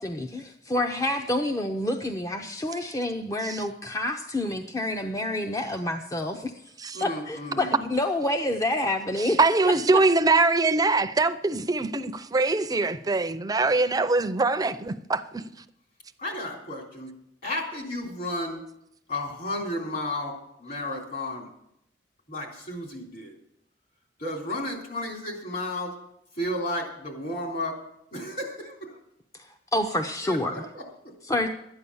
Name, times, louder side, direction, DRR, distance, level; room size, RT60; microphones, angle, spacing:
voice 1, 0.0-6.5 7.0-9.4 9.7-10.0 29.7-30.7 31.2-31.5, left 1 dB, 20° left, 0.6 m, -28 dB
voice 2, 6.9-7.8 16.2-17.1 17.4-18.6 19.1-20.3 20.6-21.5 22.3-23.4 24.2-25.9 26.4-27.8 28.1-29.0 30.2-31.1, left 1 dB, 55° left, 3.6 m, -33 dB
voice 3, 9.2-15.4, right 3 dB, 20° right, 0.6 m, -23 dB
12.0 x 9.7 x 7.0 m
head